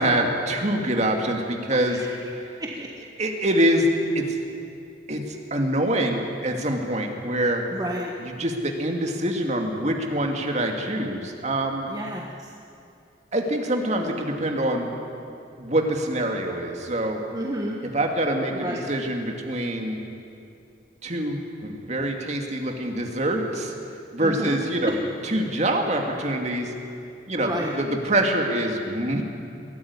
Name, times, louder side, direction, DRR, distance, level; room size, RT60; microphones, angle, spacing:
voice 1, 0.0-2.0 2.4-2.6 3.2-3.9 4.1-4.4 5.1-7.6 8.4-11.9 13.3-14.9 15.6-17.2 17.9-20.0 21.0-23.7 24.1-24.9 25.3-26.7 27.3-29.2, right 1 dB, 40° right, 3 dB, 2.4 m, -25 dB
voice 2, 1.7-2.9 7.7-8.1 11.9-12.5 17.3-17.8 18.5-18.8 24.2-24.9 27.4-27.8, right 1 dB, 20° right, -1 dB, 1.3 m, -32 dB
21.0 x 14.5 x 9.8 m, 2.6 s
head